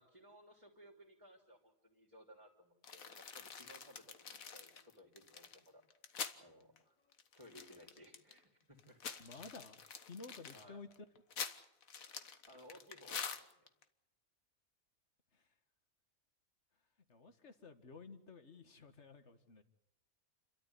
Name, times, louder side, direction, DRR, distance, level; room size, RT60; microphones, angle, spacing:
voice 1, 0.0-5.8 6.4-6.9 7.4-9.0 9.3-9.4 10.5-10.8 12.5-13.7, equal, 20° right, -1 dB, 3.6 m, -60 dB
sound 1, 2.8-6.4 6.8-6.9 7.1-8.4 8.8-13.8, left 6 dB, 80° left, 1.7 m, -46 dB
voice 2, 9.2-9.8 10.1-10.9 15.3-15.5 17.1-19.6, left 4 dB, 55° left, 8 dB, 2.1 m, -53 dB
29.5 x 13.5 x 9.9 m, 0.85 s
omnidirectional pair, 1.4 m